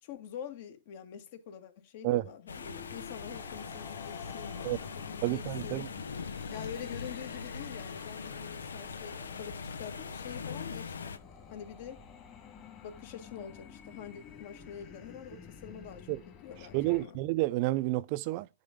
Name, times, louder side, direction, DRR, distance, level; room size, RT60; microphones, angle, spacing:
voice 1, 0.0-6.1 6.5-11.2 11.5-12.0 12.8-17.2, left 8 dB, 50° left, 2.0 m, -46 dB
sound 1, 2.5-11.2, left 5 dB, 90° left, 0.9 m, -41 dB
sound 2, 2.6-17.0, left 6 dB, 25° left, 2.2 m, -51 dB
voice 2, 5.2-5.9 16.1-16.2 16.7-18.5, right 18 dB, 45° right, 0.6 m, -30 dB
10.5 x 3.9 x 5.3 m
hypercardioid pair, 130°, 0 cm